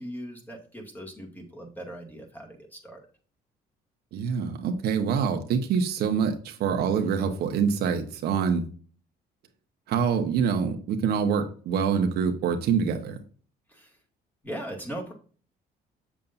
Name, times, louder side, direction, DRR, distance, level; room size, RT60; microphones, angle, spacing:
voice 1, 0.0-3.0 13.7-14.0 14.4-15.1, right 1 dB, 10° left, 0 dB, 2.4 m, -39 dB
voice 2, 4.1-8.6 9.9-13.2, right 6 dB, 75° right, 5 dB, 1.3 m, -25 dB
7.5 x 7.2 x 2.7 m, 0.41 s
cardioid pair, 110°, 17 cm